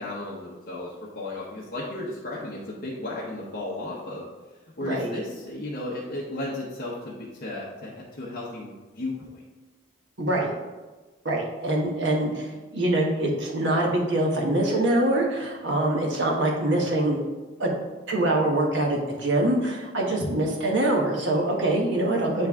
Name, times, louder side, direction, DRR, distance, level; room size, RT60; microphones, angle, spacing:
voice 1, 0.0-4.2 4.8-9.4, left 2 dB, 50° left, -5 dB, 0.9 m, -34 dB
voice 2, 4.8-5.2 10.2-10.5 11.2-17.2 17.6-17.7 18.1-22.5, right 1 dB, 65° right, -1 dB, 1.2 m, -24 dB
8.7 x 3.4 x 3.6 m, 1.2 s
head